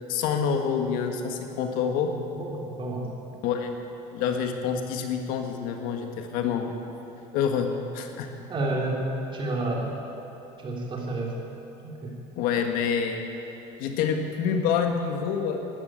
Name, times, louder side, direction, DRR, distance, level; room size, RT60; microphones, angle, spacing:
voice 1, 0.1-2.1 3.4-3.7 4.1-6.7 7.3-8.3 12.4-13.2 13.8-15.6, left 7 dB, 75° left, 4 dB, 1.6 m, -27 dB
voice 2, 2.4-3.1 8.5-9.0 9.3-9.9 10.6-11.3 11.8-12.1, right 2 dB, 35° right, -1 dB, 3.6 m, -30 dB
12.5 x 11.0 x 9.1 m, 2.9 s
supercardioid pair, 100°, 15 cm